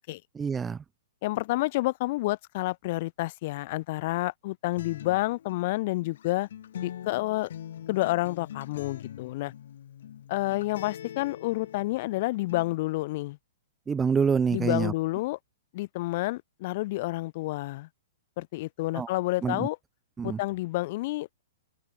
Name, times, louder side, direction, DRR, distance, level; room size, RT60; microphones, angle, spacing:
voice 1, 0.3-0.8 13.9-14.9 18.9-19.1 19.4-19.7 20.2-20.4, right 6 dB, 10° right, 1.6 m, -26 dB
voice 2, 1.2-6.5 6.8-7.5 7.9-9.5 10.3-13.4 14.5-15.4 15.7-17.9 18.4-19.8 20.2-21.4, left 19 dB, 45° left, 4.6 m, -29 dB
Acoustic guitar, 4.8-12.8, left 10 dB, 70° left, 4.0 m, -43 dB
hypercardioid pair, 145°, 0 cm